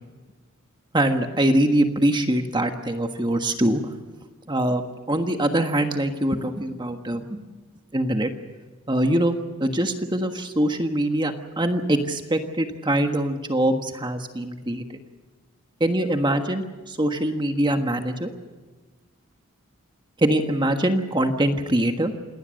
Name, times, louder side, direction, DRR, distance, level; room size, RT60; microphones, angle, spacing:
voice 1, 0.9-3.8 4.5-4.8 5.1-7.4 7.9-8.3 8.9-14.8 15.8-18.3 20.2-22.1, right 1 dB, 20° right, 6 dB, 1.4 m, -23 dB
27.5 x 19.5 x 6.5 m, 1.3 s
head